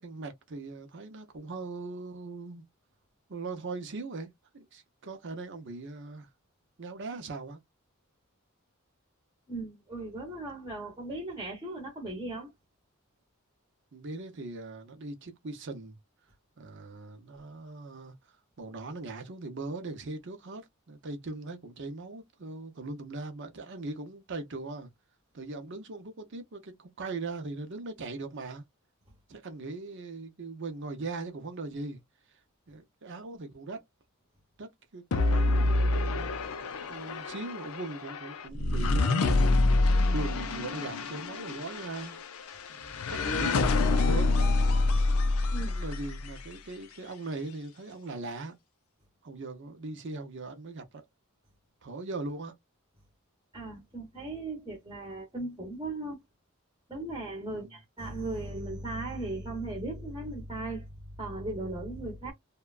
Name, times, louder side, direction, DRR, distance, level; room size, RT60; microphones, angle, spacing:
voice 1, 0.0-2.7 3.3-6.3 6.8-7.6 13.9-16.0 16.6-18.1 18.6-24.9 25.3-28.6 29.3-32.0 32.7-33.8 34.6-34.7 34.9-36.3 36.9-39.5 40.1-42.2 42.7-44.4 45.5-48.5 49.2-51.1 51.8-52.5 57.5-57.7, right 3 dB, 60° right, 0.7 m, -40 dB
voice 2, 9.5-12.5 45.5-45.7 53.5-56.2 56.9-62.3, right 2 dB, 15° right, 0.9 m, -37 dB
sound 1, 35.1-46.4, left 2 dB, 85° left, 0.5 m, -27 dB
2.7 x 2.2 x 2.3 m
head